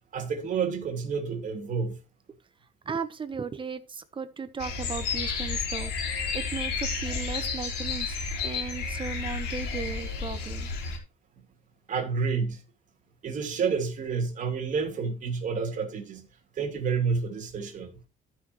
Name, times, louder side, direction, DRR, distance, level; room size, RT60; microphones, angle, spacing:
voice 1, 0.1-2.0 11.9-12.6 13.2-16.3 16.6-17.9, right 5 dB, 50° right, 3.0 m, -29 dB
voice 2, 2.8-10.7, right 5 dB, 30° right, 1.3 m, -36 dB
sound 1, 4.6-11.0, left 5 dB, 80° left, 4.1 m, -31 dB
14.0 x 6.4 x 3.2 m
cardioid pair, 110°, 17 cm